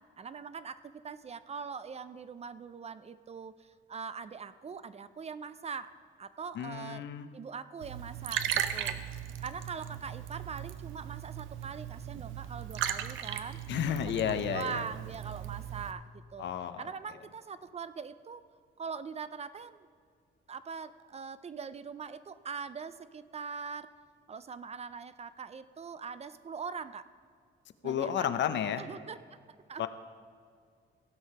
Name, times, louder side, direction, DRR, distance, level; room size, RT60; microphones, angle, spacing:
voice 1, 0.2-5.9 6.2-7.0 7.3-9.0 9.4-16.1 16.3-16.5 16.8-18.4 18.8-19.8 20.5-23.9 24.3-27.1 27.8-28.3 28.8-29.2 29.7-29.9, right 6 dB, 30° right, 14 dB, 0.4 m, -42 dB
voice 2, 6.5-7.3 13.7-14.8 16.4-16.8 27.8-29.0 29.8-29.9, left 9 dB, 65° left, 10 dB, 0.7 m, -32 dB
Liquid, 7.8-15.9, right 10 dB, 85° right, 0.6 m, -37 dB
16.5 x 5.7 x 5.5 m, 2.1 s
cardioid pair, 90°, 20 cm